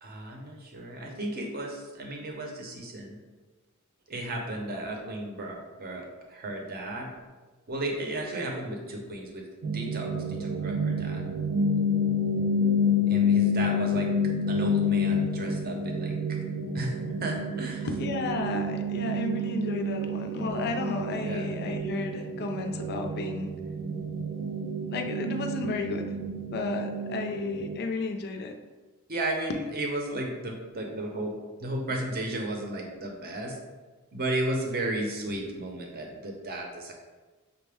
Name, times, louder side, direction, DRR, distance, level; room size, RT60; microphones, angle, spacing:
voice 1, 0.0-3.2 4.1-7.1 7.7-10.1 10.4-11.2 13.1-14.1 14.5-16.4 16.7-16.9 17.2-17.9 19.9-20.4 20.8-21.5 29.1-31.3 31.6-33.6 34.1-36.9, right 1 dB, 45° right, 1 dB, 0.7 m, -34 dB
sound 1, 9.6-27.8, left 2 dB, 90° right, 0.5 m, -29 dB
voice 2, 17.8-23.5 24.9-26.2 26.5-28.6, left 3 dB, 50° left, 5 dB, 0.4 m, -33 dB
5.8 x 2.1 x 3.4 m, 1.3 s
head